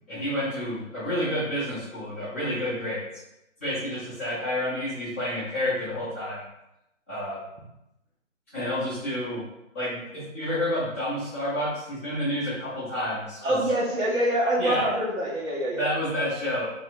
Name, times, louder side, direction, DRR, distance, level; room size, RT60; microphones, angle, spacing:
voice 1, 0.1-3.0 3.6-6.4 7.1-7.4 8.5-9.4 9.7-13.6 14.6-14.8 15.7-16.7, left 1 dB, 10° left, -15 dB, 0.7 m, -29 dB
voice 2, 13.4-15.9, right 1 dB, 75° right, -6 dB, 1.1 m, -25 dB
3.2 x 2.7 x 2.6 m, 0.88 s
hypercardioid pair, 155°, 40 cm